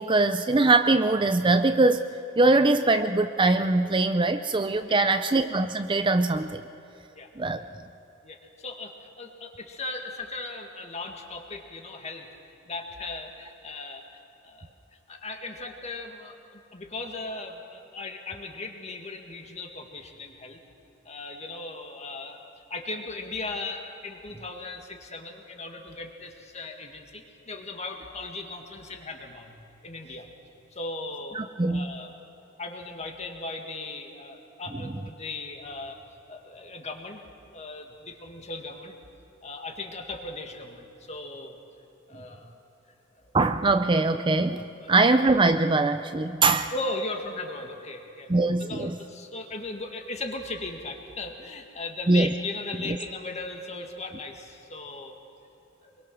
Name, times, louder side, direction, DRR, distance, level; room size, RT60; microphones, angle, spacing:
voice 1, 0.0-2.1 2.4-6.6 7.4-7.6 31.4-31.9 43.3-46.7 48.3-49.0 52.1-52.3 52.9-53.0, right 3 dB, 25° right, 9 dB, 0.5 m, -22 dB
voice 2, 4.8-5.2 7.1-7.3 8.2-14.7 15.1-20.6 21.1-22.4 22.7-29.6 29.8-30.3 30.7-31.4 31.7-32.1 32.6-36.0 36.3-37.2 37.5-39.0 39.4-41.6 42.1-42.6 43.2-43.3 44.8-44.9 46.7-48.3 48.6-55.1 55.8-55.9, left 2 dB, 35° left, 3 dB, 2.0 m, -38 dB
25.0 x 22.5 x 6.2 m, 3.0 s
head